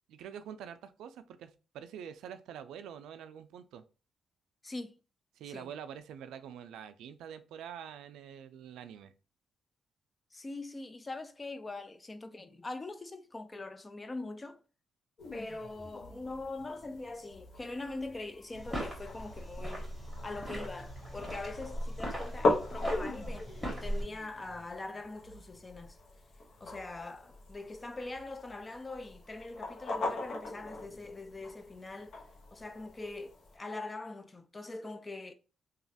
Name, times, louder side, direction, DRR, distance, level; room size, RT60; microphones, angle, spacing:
voice 1, 0.1-3.8 5.4-9.1, right 8 dB, 90° right, 0.3 m, -46 dB
voice 2, 4.6-5.0 5.5-5.7 10.3-14.6 15.3-19.9 20.2-26.0 26.6-32.2 32.5-35.3, left 2 dB, 25° left, 0.4 m, -42 dB
sound 1, 15.2-33.6, left 2 dB, 65° left, 0.9 m, -40 dB
sound 2, 18.5-24.0, equal, 5° left, 1.7 m, -39 dB
3.0 x 2.3 x 2.7 m
cardioid pair, 95°, 0 cm